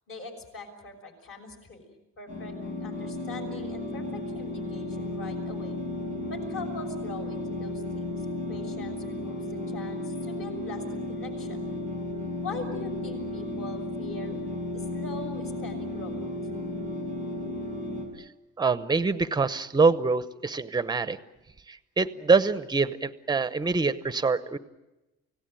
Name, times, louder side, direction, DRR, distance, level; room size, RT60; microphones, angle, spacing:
voice 1, 0.1-1.9 2.2-2.5 2.8-5.8 6.3-11.6 12.4-14.4 14.7-16.2, left 3 dB, 45° left, 3 dB, 6.1 m, -42 dB
sound 1, 2.3-18.1, left 2 dB, 75° left, 6.3 m, -34 dB
voice 2, 18.6-21.2 21.7-24.6, right 4 dB, 15° right, 13 dB, 0.8 m, -25 dB
29.5 x 17.5 x 9.1 m, 1.0 s
cardioid pair, 160°, 29 cm